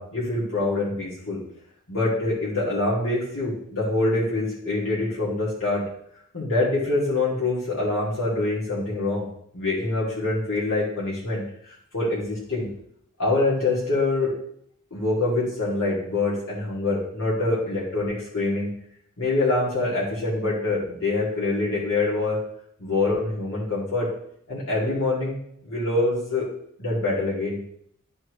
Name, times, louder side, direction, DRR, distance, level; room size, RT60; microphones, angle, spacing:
voice 1, 0.0-1.4 1.9-5.8 6.3-9.3 9.5-11.4 11.9-12.7 13.2-14.3 14.9-18.7 19.2-22.4 22.8-24.1 24.5-25.4 25.6-26.5 26.8-27.6, left 2 dB, 85° left, -7 dB, 2.5 m, -25 dB
10.5 x 4.5 x 3.2 m, 0.69 s
head